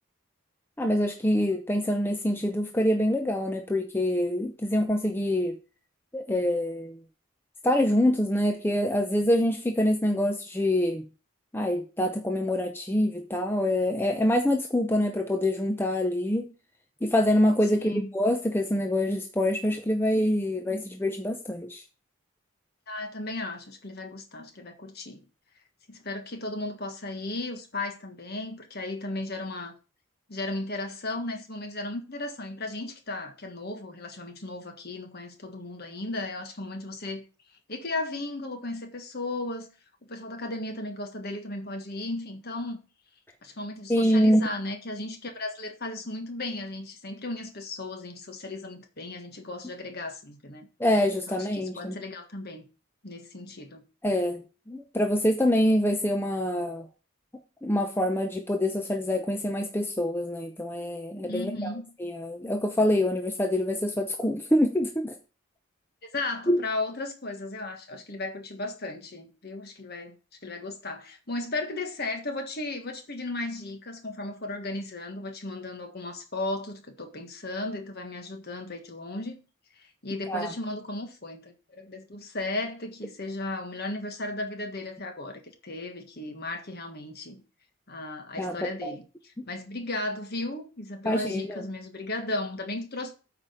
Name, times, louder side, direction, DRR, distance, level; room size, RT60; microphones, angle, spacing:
voice 1, 0.8-5.6 6.1-7.0 7.6-11.0 11.5-16.5 17.0-21.8 43.9-44.5 50.8-52.0 54.0-56.9 57.6-61.7 62.0-65.1 66.5-66.6 80.3-80.5 88.4-88.7 91.1-91.6, left 1 dB, 10° left, 0.6 m, -25 dB
voice 2, 17.8-18.1 22.9-25.2 25.9-29.7 30.3-37.2 37.7-39.7 40.1-42.8 43.4-50.7 51.3-52.7 53.0-53.8 61.3-61.9 66.0-70.1 70.4-79.4 79.8-87.4 87.9-93.1, left 2 dB, 45° left, 1.6 m, -35 dB
8.7 x 5.0 x 5.7 m
head